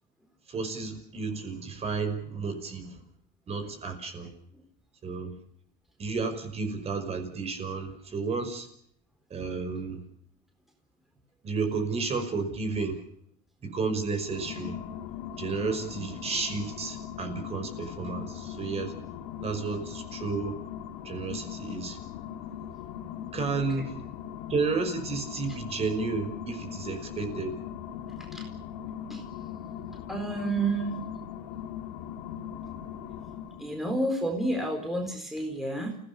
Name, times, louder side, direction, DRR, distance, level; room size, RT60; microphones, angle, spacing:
voice 1, 0.5-3.0 3.5-4.3 5.0-5.3 6.0-8.7 9.3-10.0 11.4-13.0 13.6-14.8 15.4-18.9 19.4-20.6 21.0-22.0 23.3-24.0 24.5-27.6, right 4 dB, 30° right, 7 dB, 5.7 m, -32 dB
sound 1, 14.1-33.8, left 9 dB, 90° left, 2.9 m, -40 dB
voice 2, 23.5-23.9 28.3-28.5 29.1-29.2 30.1-31.0 33.6-36.0, right 2 dB, ahead, 2 dB, 4.3 m, -30 dB
29.0 x 17.0 x 7.0 m, 0.67 s
supercardioid pair, 130°, 20 cm